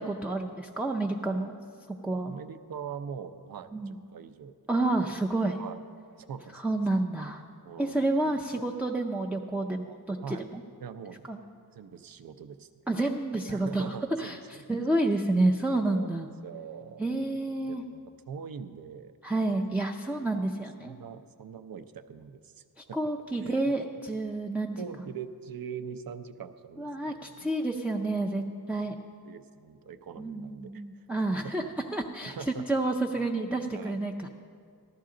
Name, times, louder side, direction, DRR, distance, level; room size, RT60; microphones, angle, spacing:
voice 1, 0.1-1.6 2.0-2.3 3.7-3.9 4.7-5.6 6.6-7.4 7.8-10.6 11.3-11.4 12.9-14.4 14.7-16.3 17.0-17.8 19.2-21.0 22.8-24.8 26.8-28.9 30.2-31.6 31.9-34.3, right 2 dB, 5° right, 0 dB, 0.4 m, -29 dB
voice 2, 2.3-4.6 5.6-5.8 6.2-7.0 7.6-8.7 10.2-10.5 10.8-11.3 11.7-12.7 13.5-14.6 15.8-16.1 16.4-17.2 17.6-19.1 20.2-20.5 20.8-22.6 22.9-23.0 23.3-23.7 24.8-27.5 28.8-28.9 29.2-30.8 31.2-31.7 32.2-32.7 33.7-34.0, right 7 dB, 65° right, 11 dB, 0.6 m, -43 dB
14.0 x 12.5 x 3.8 m, 2.2 s
wide cardioid pair, 145°, 39 cm